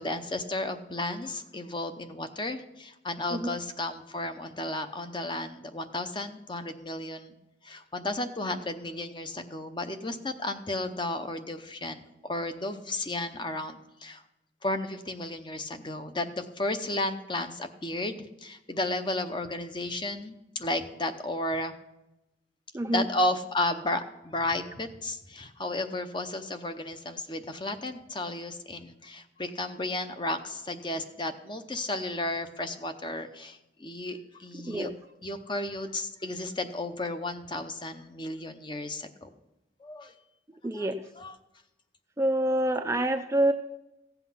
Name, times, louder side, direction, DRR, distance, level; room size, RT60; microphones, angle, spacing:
voice 1, 0.0-7.3 7.6-12.0 12.3-14.2 14.6-21.7 22.9-34.9 35.2-39.3 39.8-40.1 40.7-40.9 41.2-41.4, left 2 dB, 25° left, 8 dB, 0.7 m, -33 dB
voice 2, 22.7-23.1 34.6-34.9 40.6-41.0 42.2-43.5, right 1 dB, 15° right, 7 dB, 0.4 m, -26 dB
15.5 x 8.1 x 5.7 m, 0.94 s
head